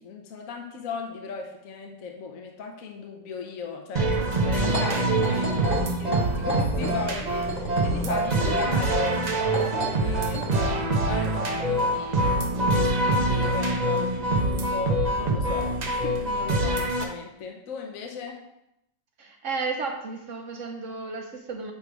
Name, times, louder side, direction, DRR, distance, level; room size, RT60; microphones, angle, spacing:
voice 1, 0.0-12.2 12.6-18.4, left 5 dB, 60° left, 2 dB, 1.1 m, -37 dB
sound 1, 3.9-17.0, right 1 dB, 85° right, 0.3 m, -25 dB
sound 2, 4.6-10.7, equal, 25° left, 1.2 m, -33 dB
voice 2, 19.2-21.7, right 4 dB, 60° right, 3 dB, 0.8 m, -33 dB
9.0 x 3.2 x 4.7 m, 0.84 s
omnidirectional pair, 1.9 m